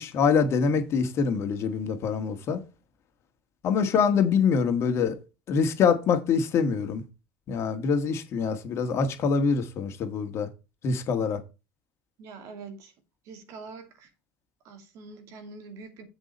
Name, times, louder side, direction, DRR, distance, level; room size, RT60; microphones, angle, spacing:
voice 1, 0.0-2.6 3.6-5.2 5.5-7.0 7.5-10.5 10.8-11.4, left 6 dB, 50° left, 1.9 m, -25 dB
voice 2, 12.2-12.9 13.2-14.1 14.6-16.0, right 4 dB, 60° right, 2.6 m, -44 dB
7.9 x 6.5 x 4.3 m
hypercardioid pair, 75°, 6 cm